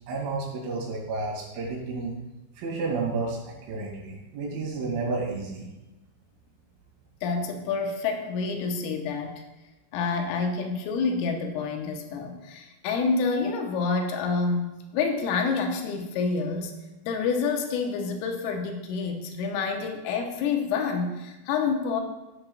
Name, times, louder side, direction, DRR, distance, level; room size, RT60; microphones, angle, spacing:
voice 1, 0.1-2.1 2.6-5.7, right 3 dB, 80° right, -3 dB, 5.1 m, -31 dB
voice 2, 7.2-9.4 9.9-16.7 17.0-22.0, left 4 dB, 80° left, 3 dB, 3.5 m, -28 dB
14.0 x 8.4 x 2.3 m, 1.0 s
omnidirectional pair, 5.8 m